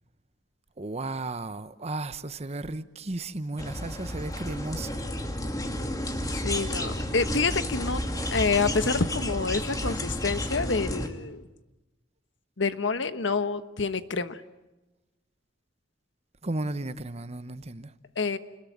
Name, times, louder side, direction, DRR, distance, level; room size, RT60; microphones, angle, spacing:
voice 1, 0.8-5.1 16.4-17.9, right 2 dB, 35° right, 1.0 m, -34 dB
sound 1, 3.6-11.1, left 1 dB, 20° left, 2.3 m, -31 dB
voice 2, 6.3-8.0 8.3-11.4 12.6-14.4 18.2-18.4, left 4 dB, 85° left, 1.3 m, -27 dB
29.5 x 20.5 x 9.4 m
head